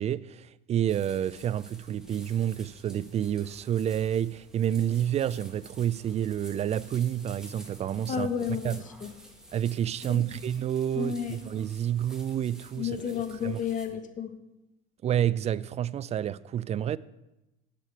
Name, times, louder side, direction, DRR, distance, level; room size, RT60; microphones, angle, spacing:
voice 1, 0.0-8.3 8.6-8.8 9.5-13.0 13.4-13.6 15.0-17.0, right 10 dB, 30° right, 0.4 m, -29 dB
sound 1, 0.9-13.9, right 1 dB, 5° right, 1.8 m, -51 dB
voice 2, 8.1-9.1 10.1-10.2 11.0-11.3 12.8-14.4, left 7 dB, 40° left, 1.4 m, -32 dB
8.4 x 6.7 x 8.5 m
supercardioid pair, 95°, 21 cm